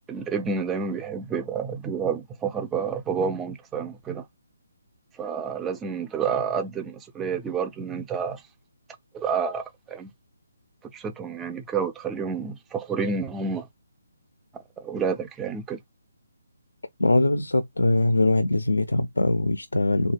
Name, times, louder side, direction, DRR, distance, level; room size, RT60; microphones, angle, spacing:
voice 1, 0.1-4.3 5.2-8.4 9.1-10.1 10.9-13.7 14.8-15.8, right 6 dB, 10° right, 0.3 m, -29 dB
voice 2, 17.0-20.1, left 2 dB, 90° left, 0.4 m, -22 dB
3.2 x 2.1 x 3.3 m
figure-of-eight pair, 150°, 0 cm